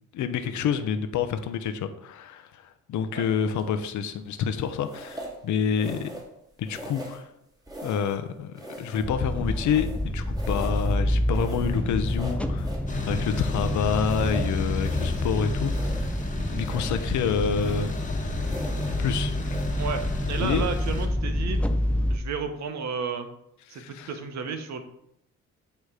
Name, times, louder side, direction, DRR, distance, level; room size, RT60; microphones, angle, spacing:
voice 1, 0.1-2.6 2.9-6.1 6.6-7.2 7.8-12.7 13.0-16.1 16.4-18.0 19.0-19.4 20.4-20.7 23.7-24.1, left 7 dB, 75° left, 9 dB, 0.7 m, -28 dB
sound 1, 3.6-3.9 4.8-5.4 5.8-6.4 6.6-7.3 7.7-8.2 8.5-10.1 10.3-11.0 11.3-12.9 13.3-15.3 15.6-16.3 16.6-17.1 17.5-18.1 18.4-19.0 19.4-19.7, right 1 dB, 10° right, 1.8 m, -41 dB
sound 2, 9.0-22.2, left 1 dB, 5° left, 0.5 m, -28 dB
sound 3, 12.9-21.1, left 2 dB, 25° left, 1.2 m, -34 dB
voice 2, 19.8-21.6 22.1-23.3 23.7-24.8, right 5 dB, 65° right, 7 dB, 1.0 m, -32 dB
8.5 x 3.1 x 4.9 m, 0.78 s
cardioid pair, 90°, 30 cm